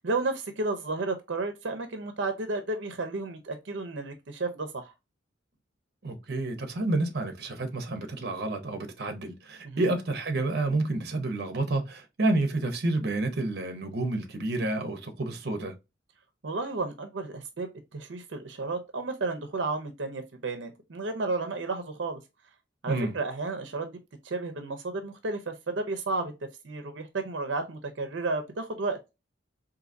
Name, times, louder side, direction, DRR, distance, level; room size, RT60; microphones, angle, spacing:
voice 1, 0.0-4.9 9.6-9.9 16.4-22.2 22.8-24.0 24.2-26.3 26.6-29.0, right 3 dB, 90° right, 0.6 m, -32 dB
voice 2, 6.0-15.7 22.9-23.1, right 2 dB, 60° right, 0.8 m, -29 dB
3.9 x 2.7 x 2.6 m
head